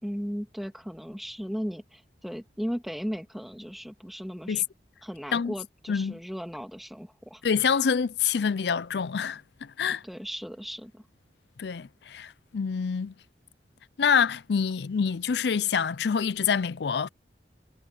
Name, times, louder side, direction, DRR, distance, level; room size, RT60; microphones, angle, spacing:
voice 1, 0.0-4.6 5.0-7.4 10.0-11.0, equal, ahead, 2.4 m, -36 dB
voice 2, 5.9-6.2 7.4-10.0 11.6-13.1 14.0-17.1, left 6 dB, 70° left, 0.5 m, -26 dB
head